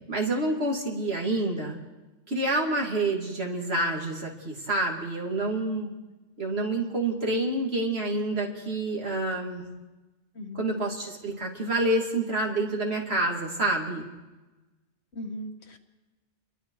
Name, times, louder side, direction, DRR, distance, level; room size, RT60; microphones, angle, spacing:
voice 1, 0.0-1.8 2.3-5.9 6.4-9.6 10.5-14.0, right 2 dB, 65° right, 0 dB, 3.1 m, -28 dB
voice 2, 10.4-10.8 15.1-15.8, equal, 70° left, 5 dB, 1.9 m, -38 dB
28.0 x 22.5 x 4.8 m, 1.1 s
omnidirectional pair, 1.1 m